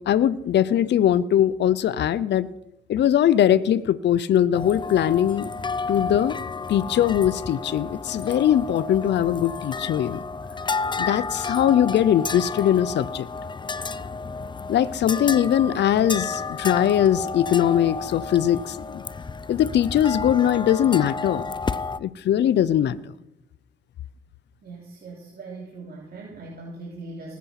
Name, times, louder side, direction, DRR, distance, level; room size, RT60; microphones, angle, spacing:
voice 1, 0.0-2.5 2.9-5.5 5.9-6.4 6.7-10.2 11.0-13.3 14.7-19.0 19.5-21.4 22.0-23.0, left 10 dB, 60° left, 17 dB, 0.7 m, -21 dB
sound 1, 4.5-22.0, left 4 dB, 25° left, 0.6 m, -31 dB
voice 2, 24.6-27.4, right 3 dB, 50° right, -2 dB, 3.2 m, -40 dB
19.5 x 8.2 x 5.9 m, 0.89 s
cardioid pair, 90°, 20 cm